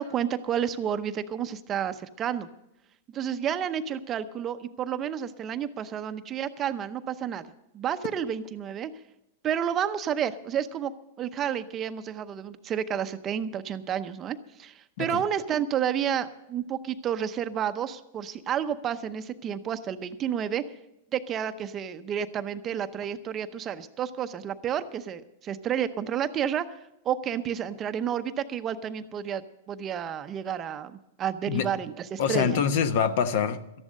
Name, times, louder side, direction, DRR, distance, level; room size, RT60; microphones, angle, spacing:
voice 1, 0.0-2.5 3.1-7.5 7.7-8.9 9.4-10.9 11.2-20.6 21.1-26.8 27.0-32.7, right 9 dB, 25° right, 11 dB, 0.7 m, -30 dB
voice 2, 32.2-33.8, left 7 dB, 60° left, 11 dB, 1.0 m, -25 dB
13.5 x 11.0 x 6.4 m, 0.88 s
supercardioid pair, 150°, 0 cm